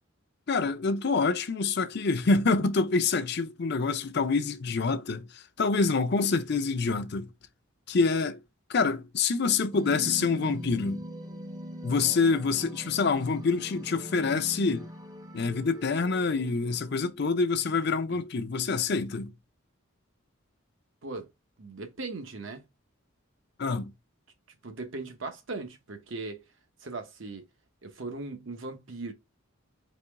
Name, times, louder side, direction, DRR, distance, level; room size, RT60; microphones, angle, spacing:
voice 1, 0.5-7.3 7.9-8.4 8.7-11.0 11.8-14.9 15.3-19.3 23.6-23.9, left 4 dB, 55° left, 0.6 m, -26 dB
voice 2, 6.1-6.4 18.1-18.2 21.0-21.3 21.6-22.7 24.6-26.4 26.8-27.4 27.8-29.1, right 3 dB, 70° right, 1.0 m, -39 dB
sound 1, 9.7-16.9, equal, 20° right, 0.7 m, -42 dB
4.3 x 3.0 x 3.5 m
head